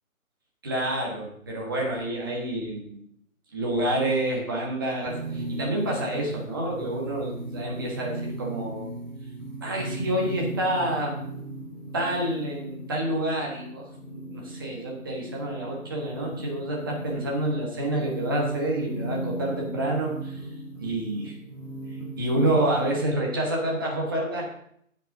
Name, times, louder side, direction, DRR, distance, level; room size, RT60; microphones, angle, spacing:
voice 1, 0.6-3.0 3.5-8.9 9.6-11.1 11.9-20.4 20.8-21.3 22.2-24.5, right 1 dB, 15° right, -1 dB, 1.3 m, -28 dB
sound 1, 5.1-23.1, right 1 dB, 5° left, 2.9 m, -36 dB
15.0 x 5.2 x 3.8 m, 0.70 s
figure-of-eight pair, 165°, 44 cm